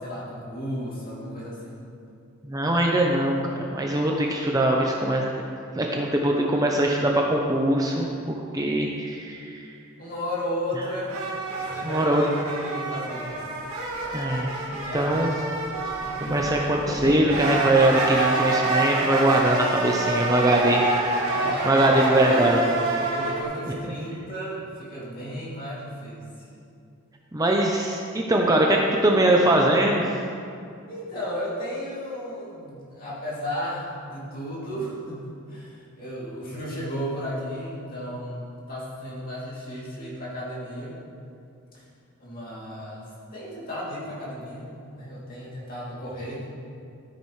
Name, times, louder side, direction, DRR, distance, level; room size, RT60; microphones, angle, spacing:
voice 1, 0.0-1.8 10.0-13.4 14.9-15.6 15.9-16.3 21.3-22.7 23.1-26.3 30.9-41.0 41.7-41.8 42.2-46.5, equal, 40° left, -7 dB, 2.7 m, -34 dB
voice 2, 2.4-5.3 5.8-9.6 11.8-12.2 14.1-15.3 16.2-20.9 21.6-22.6 23.7-23.8 27.3-30.0, right 1 dB, 15° right, -1 dB, 0.6 m, -22 dB
sound 1, 11.1-23.4, right 2 dB, 90° right, 2.1 m, -27 dB
13.5 x 8.7 x 3.2 m, 2.5 s
head